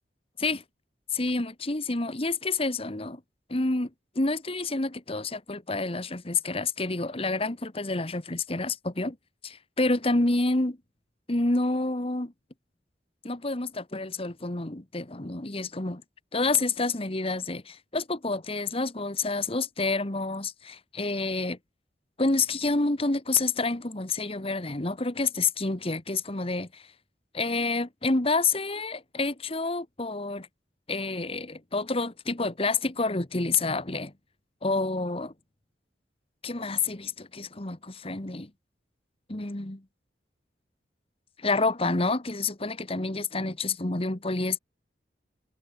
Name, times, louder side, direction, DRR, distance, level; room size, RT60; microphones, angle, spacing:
voice 1, 1.1-3.2 3.5-3.9 4.1-9.2 9.4-10.8 11.3-12.3 13.2-16.0 16.3-21.6 22.2-26.9 27.3-30.5 30.9-34.1 34.6-35.3 36.4-38.5 39.3-39.8 41.4-44.6, left 3 dB, 35° left, 1.6 m, -28 dB
head